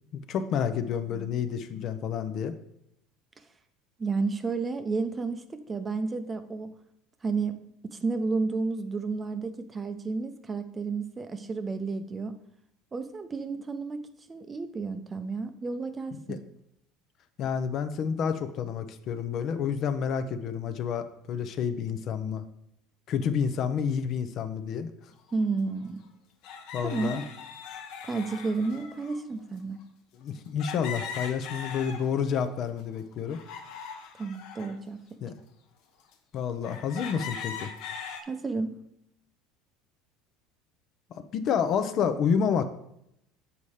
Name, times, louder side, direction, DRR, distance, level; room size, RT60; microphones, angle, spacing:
voice 1, 0.1-2.6 16.3-16.4 17.4-22.4 23.1-24.9 26.7-27.2 30.2-33.4 35.2-35.3 36.3-37.7 41.1-42.6, left 7 dB, 50° left, 10 dB, 0.6 m, -29 dB
voice 2, 4.0-6.7 7.2-12.4 12.9-16.4 25.3-26.0 26.8-27.2 28.0-29.8 34.2-35.0 38.3-38.8, right 4 dB, 20° right, 9 dB, 0.6 m, -31 dB
sound 1, 25.3-25.4 26.4-29.2 30.6-32.3 32.8-34.7 35.4-35.5 36.1-36.2 36.6-38.2, left 6 dB, 65° left, 1.0 m, -40 dB
7.0 x 4.2 x 4.8 m, 0.78 s
supercardioid pair, 110°, 0 cm